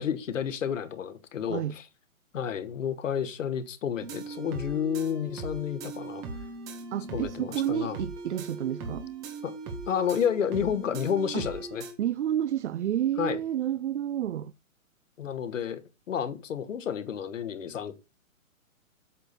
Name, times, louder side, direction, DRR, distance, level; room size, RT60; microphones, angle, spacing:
voice 1, 0.0-1.8 2.3-6.2 7.1-8.0 9.4-9.5 9.9-11.8 13.2-13.4 15.2-15.8 16.1-17.9, left 8 dB, 60° left, 1.4 m, -30 dB
sound 1, 4.0-11.9, right 3 dB, 10° right, 0.5 m, -39 dB
voice 2, 6.9-9.1 11.3-11.5 12.0-14.5, right 11 dB, 55° right, 0.5 m, -30 dB
8.2 x 6.4 x 4.1 m
hypercardioid pair, 135°, 42 cm